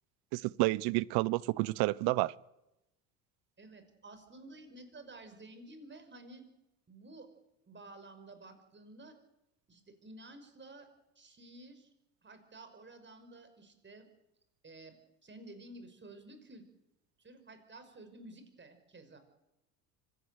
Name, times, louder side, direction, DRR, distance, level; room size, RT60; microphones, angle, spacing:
voice 1, 0.3-2.3, right 21 dB, 60° right, 0.8 m, -30 dB
voice 2, 3.6-6.4 6.9-7.3 7.7-9.2 9.7-10.9 11.2-11.9 12.2-14.1 14.6-15.0 15.2-16.6 17.2-19.2, right 2 dB, 25° right, 5.7 m, -52 dB
25.0 x 17.0 x 9.1 m
hypercardioid pair, 75°, 45 cm